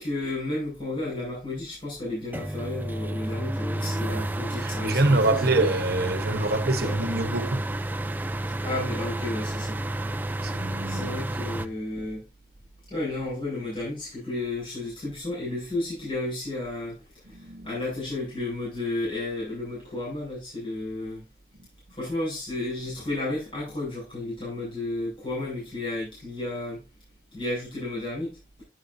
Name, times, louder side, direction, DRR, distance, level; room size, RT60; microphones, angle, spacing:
voice 1, 0.0-5.7 6.8-6.9 8.6-9.8 10.9-12.2 12.9-21.2 21.9-26.8 27.3-28.4, left 2 dB, 30° left, 6.2 m, -32 dB
sound 1, 2.3-11.7, right 1 dB, 10° right, 0.4 m, -31 dB
voice 2, 4.6-7.6 10.4-11.2 17.3-17.8, right 2 dB, 60° right, 1.1 m, -25 dB
9.5 x 8.4 x 2.7 m
head